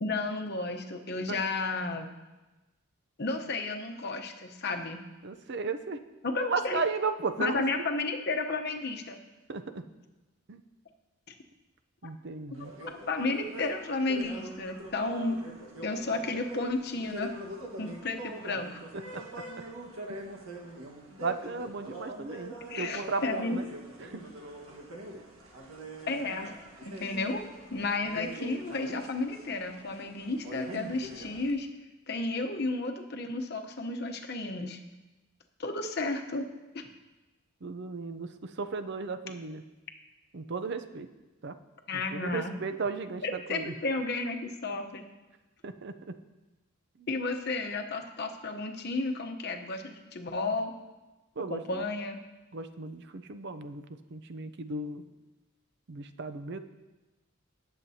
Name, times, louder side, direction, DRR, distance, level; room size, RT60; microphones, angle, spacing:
voice 1, 0.0-2.1 3.2-5.0 6.2-6.8 7.4-9.2 12.6-12.8 13.1-15.4 15.8-17.3 17.8-18.8 22.7-23.6 26.1-26.5 26.8-27.4 27.7-31.7 32.1-34.8 35.6-36.5 36.7-36.9 41.9-42.5 43.2-45.0 47.1-50.7 51.5-52.2, left 3 dB, 50° left, 4 dB, 0.9 m, -32 dB
voice 2, 5.2-6.0 6.4-7.6 9.5-9.8 10.5-10.6 12.0-12.7 19.1-19.2 20.1-20.2 21.2-23.7 24.0-24.2 37.6-39.6 40.3-41.1 41.4-41.6 41.9-43.7 45.6-46.2 47.0-47.1 51.4-51.9 52.5-55.1 55.9-56.6, right 4 dB, 55° right, 10 dB, 0.5 m, -35 dB
sound 1, 12.5-31.5, right 1 dB, 90° right, 1.5 m, -43 dB
18.5 x 7.4 x 2.8 m, 1.1 s
head